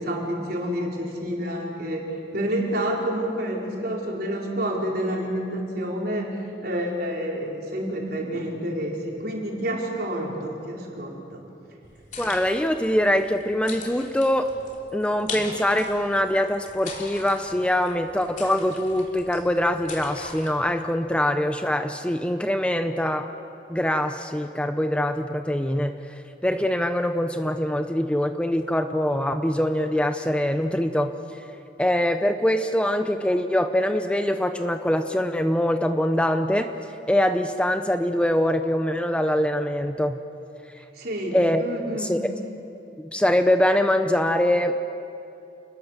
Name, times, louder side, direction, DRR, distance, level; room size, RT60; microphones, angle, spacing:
voice 1, 0.0-11.4 40.9-42.2, right 1 dB, 60° right, -2 dB, 4.6 m, -29 dB
sound 1, 11.8-20.5, left 4 dB, 45° left, 3.4 m, -40 dB
voice 2, 12.2-14.5 14.9-23.3 23.7-31.4 31.8-36.7 37.1-40.2 41.3-41.6 41.9-42.3 43.0-44.7, left 1 dB, 5° left, 7 dB, 0.7 m, -23 dB
29.5 x 20.0 x 7.4 m, 2.8 s
head